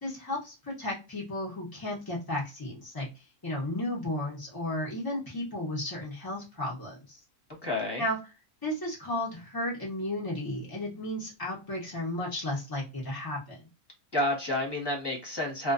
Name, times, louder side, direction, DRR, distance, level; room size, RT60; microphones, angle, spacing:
voice 1, 0.0-3.1 3.4-7.2 8.0-8.2 8.6-13.6, left 1 dB, 40° left, -4 dB, 0.3 m, -34 dB
voice 2, 7.6-8.0 14.1-15.7, left 1 dB, 20° left, -1 dB, 0.8 m, -29 dB
2.4 x 2.3 x 2.4 m, 0.29 s
omnidirectional pair, 1.6 m